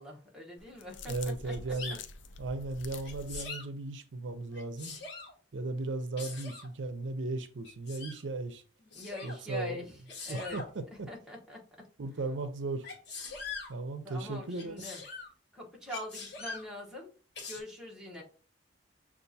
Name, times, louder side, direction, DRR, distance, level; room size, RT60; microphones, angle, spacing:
voice 1, 0.0-1.1 1.4-1.5 1.9-2.0 8.8-10.6 10.9-11.6 14.0-15.0 15.5-17.1 17.5-18.2, left 1 dB, 5° right, 1.1 m, -43 dB
sound 1, 0.6-3.5, left 3 dB, 85° left, 0.4 m, -46 dB
voice 2, 1.1-2.0 2.4-5.0 5.5-8.6 9.2-9.8 10.3-10.6 12.0-12.8 13.7-14.9, right 2 dB, 80° right, 0.5 m, -36 dB
Sneeze, 1.5-2.0 3.0-3.7 4.5-5.3 6.2-6.7 7.6-8.2 8.9-9.4 10.1-10.7 12.8-13.7 14.6-15.3 15.9-16.7 17.4-17.6, left 4 dB, 60° left, 1.2 m, -42 dB
6.5 x 2.5 x 2.7 m
head